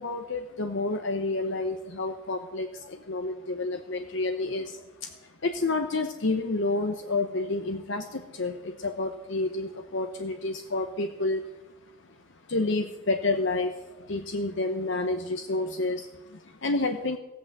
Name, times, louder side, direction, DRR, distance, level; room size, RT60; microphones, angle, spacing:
voice 1, 0.0-11.4 12.5-17.2, left 2 dB, 60° left, 6 dB, 0.9 m, -29 dB
15.5 x 8.5 x 7.4 m, 0.99 s
head